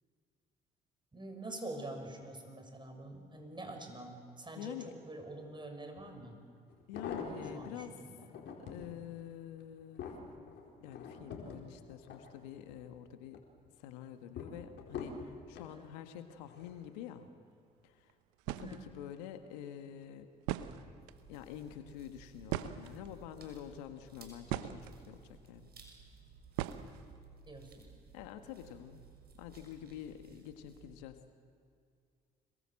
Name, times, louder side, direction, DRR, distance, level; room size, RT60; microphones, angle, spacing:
voice 1, 1.1-6.3 7.5-8.3 15.7-15.8 18.5-18.9 27.5-27.9, right 2 dB, 20° right, 5 dB, 6.6 m, -46 dB
voice 2, 4.6-5.0 6.9-8.0 8.6-10.0 10.8-13.4 13.8-17.3 17.8-18.1 18.6-20.3 21.3-25.7 28.1-29.0 29.4-31.2, left 10 dB, 75° left, 9 dB, 1.4 m, -47 dB
sound 1, 6.0-6.1 6.7-7.7 8.2-8.9 9.4-12.8 13.2-13.7 14.4-15.7 16.5-16.8 17.1-17.2, left 6 dB, 60° left, 4.5 m, -45 dB
sound 2, 18.1-18.2 18.4-18.8 20.0-20.1 20.4-21.2 22.5-23.3 24.0-25.0 26.6-27.2, right 13 dB, 75° right, 1.0 m, -38 dB
sound 3, 21.0-30.9, right 5 dB, 50° right, 6.7 m, -58 dB
26.5 x 22.0 x 7.7 m, 2.3 s
hypercardioid pair, 55°, 21 cm